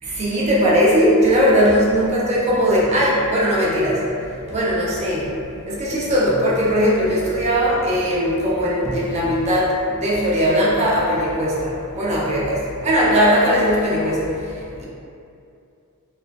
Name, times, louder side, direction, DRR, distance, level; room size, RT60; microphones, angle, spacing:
voice 1, 0.0-14.8, equal, 30° right, -6 dB, 0.5 m, -19 dB
2.4 x 2.3 x 2.3 m, 2.5 s
head